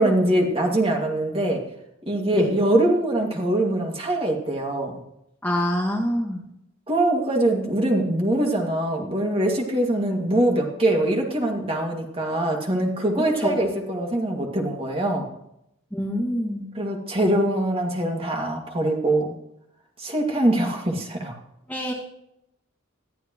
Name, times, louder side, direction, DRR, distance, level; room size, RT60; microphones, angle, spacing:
voice 1, 0.0-1.6 2.1-5.0 6.9-15.2 16.7-19.3 20.0-21.4, right 1 dB, 30° right, 0 dB, 2.4 m, -23 dB
voice 2, 5.4-6.4 13.4-13.6 15.9-16.6 21.7-21.9, equal, 10° left, -3 dB, 2.1 m, -25 dB
21.0 x 13.5 x 3.2 m, 0.79 s
head